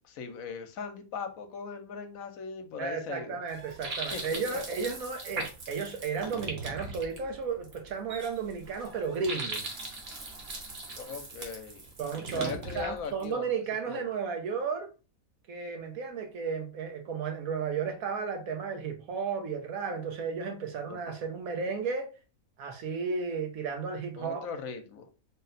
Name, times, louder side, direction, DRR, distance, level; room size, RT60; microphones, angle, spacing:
voice 1, 0.0-3.4 4.1-4.6 11.0-11.8 12.4-13.5 13.9-14.0 20.9-21.1 24.2-25.1, left 5 dB, 75° left, 1.1 m, -39 dB
voice 2, 2.8-9.6 12.0-14.9 15.5-22.1 22.6-24.5, right 5 dB, 80° right, 1.2 m, -33 dB
sound 1, 3.5-13.3, right 3 dB, 50° right, 1.1 m, -40 dB
3.9 x 2.1 x 4.0 m
omnidirectional pair, 1.5 m